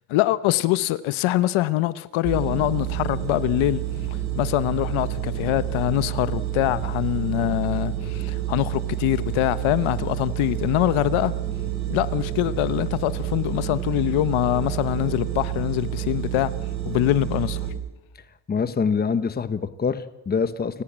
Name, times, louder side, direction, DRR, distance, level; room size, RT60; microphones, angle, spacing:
voice 1, 0.1-3.8 4.1-11.3 11.9-16.5 16.9-17.7, left 16 dB, 80° left, 1.1 m, -24 dB
sound 1, 2.2-17.7, right 11 dB, 35° right, 6.2 m, -29 dB
voice 2, 18.5-20.8, left 5 dB, 20° left, 1.1 m, -25 dB
30.0 x 17.0 x 7.5 m
cardioid pair, 150°, 48 cm